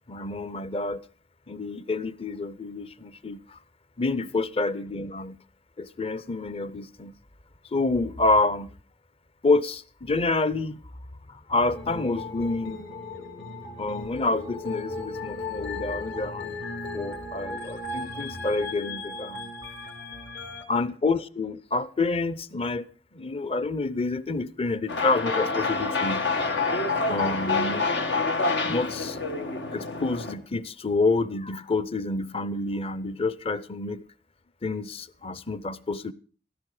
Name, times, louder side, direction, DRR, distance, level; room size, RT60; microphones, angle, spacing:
voice 1, 0.1-1.0 1.5-3.6 4.0-5.4 5.8-7.1 7.7-8.7 9.4-10.8 11.3-12.8 13.8-16.6 16.9-19.5 20.7-26.3 27.1-29.2 29.7-34.0 34.6-36.1, left 3 dB, 35° left, 0.7 m, -28 dB
sound 1, 11.7-20.6, left 2 dB, 70° left, 2.9 m, -36 dB
sound 2, 24.9-30.3, left 3 dB, 90° left, 1.7 m, -27 dB
14.5 x 13.5 x 4.9 m
head